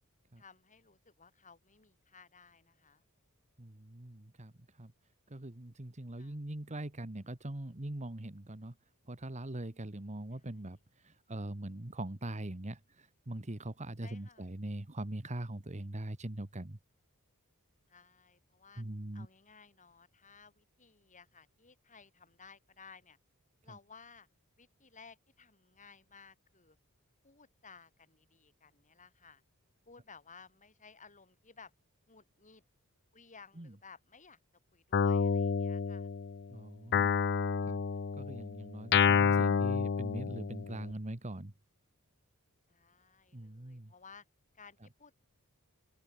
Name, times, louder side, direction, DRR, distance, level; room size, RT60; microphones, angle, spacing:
voice 1, 0.4-3.0 6.2-6.4 14.0-14.5 17.9-18.8 19.1-23.2 23.6-24.3 24.6-26.8 27.2-29.4 29.9-31.7 32.1-32.6 33.1-34.4 34.7-36.1 42.7-44.3 44.5-45.2, left 5 dB, 35° left, 7.2 m, -57 dB
voice 2, 3.6-4.5 4.8-4.9 5.3-8.7 9.1-10.8 11.0-16.8 18.8-19.3 23.7-23.8 33.6-33.7 36.5-37.2 37.6-37.8 38.2-41.5 43.3-43.9, right 1 dB, 30° right, 1.5 m, -42 dB
Guitar, 34.9-36.4 36.9-40.8, left 6 dB, 50° left, 0.5 m, -29 dB
open air
head